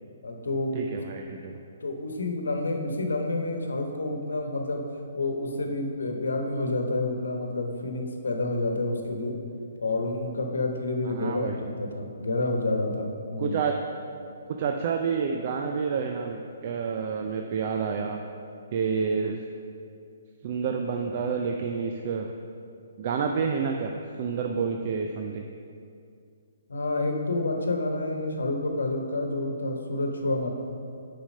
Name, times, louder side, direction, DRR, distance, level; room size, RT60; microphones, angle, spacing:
voice 1, 0.2-0.8 1.8-4.8 5.1-9.3 9.8-13.6 26.7-30.5, left 2 dB, 75° left, 3 dB, 1.1 m, -29 dB
voice 2, 0.7-1.6 11.1-11.6 13.4-13.7 14.5-16.4 16.6-18.2 18.7-19.4 20.4-22.3 23.0-23.9 24.2-25.4, right 6 dB, 45° right, 3 dB, 0.5 m, -29 dB
7.1 x 5.7 x 5.4 m, 2.5 s
figure-of-eight pair, 130°, 0 cm